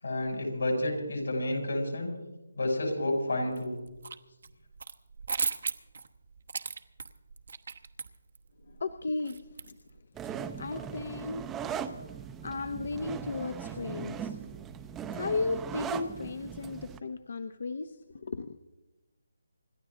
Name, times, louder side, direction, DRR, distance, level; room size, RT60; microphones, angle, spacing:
voice 1, 0.0-2.1 2.5-3.7, left 1 dB, 80° left, 1 dB, 6.6 m, -30 dB
sound 1, 3.6-4.2 4.4-10.0, right 5 dB, 60° right, 1.0 m, -36 dB
voice 2, 8.7-9.7 10.6-12.0 12.4-14.4 15.1-18.6, left 3 dB, 55° left, 10 dB, 0.8 m, -35 dB
sound 2, 10.2-17.0, right 7 dB, 10° right, 0.6 m, -39 dB
27.0 x 12.0 x 3.7 m, 1.1 s
hypercardioid pair, 165°, 0 cm